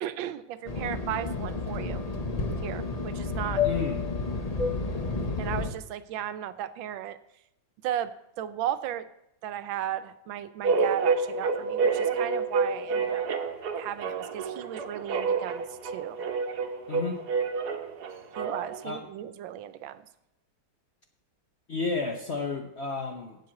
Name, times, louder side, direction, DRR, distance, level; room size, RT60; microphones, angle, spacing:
voice 1, 0.0-2.0 2.6-3.6 5.4-7.2 7.8-9.1 9.4-13.2 13.8-16.2 18.4-20.0, right 11 dB, 80° right, 13 dB, 1.4 m, -35 dB
Fixed-wing aircraft airplane, 0.7-5.7, left 4 dB, 80° left, 0.3 m, -30 dB
voice 2, 3.6-4.0 16.9-17.2 18.8-19.0 21.7-23.4, left 4 dB, 50° left, 4 dB, 0.8 m, -31 dB
sound 1, 10.6-18.9, right 5 dB, 60° right, 1.4 m, -28 dB
7.7 x 7.5 x 8.3 m, 0.83 s
omnidirectional pair, 2.1 m